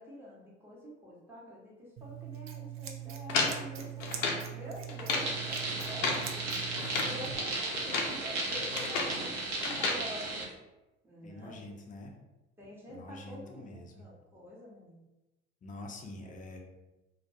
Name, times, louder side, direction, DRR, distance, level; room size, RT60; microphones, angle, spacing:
voice 1, 0.0-4.1 4.5-9.4 9.6-10.5 11.0-11.6 12.6-15.0 16.2-16.3, equal, 5° right, -5 dB, 0.8 m, -47 dB
Scissors, 2.0-7.4, right 11 dB, 35° right, 0.4 m, -42 dB
sound 1, 3.3-4.5 4.9-5.3 5.8-6.3 6.8-7.2 7.7-8.2 8.5-9.2 9.6-10.0, left 3 dB, 80° left, 0.5 m, -32 dB
sound 2, 5.2-10.4, right 2 dB, 65° right, 0.8 m, -35 dB
voice 2, 11.2-12.1 12.9-14.0 15.6-16.6, left 2 dB, 20° left, 2 dB, 0.5 m, -46 dB
2.2 x 2.2 x 2.7 m, 1.0 s
hypercardioid pair, 60°, 38 cm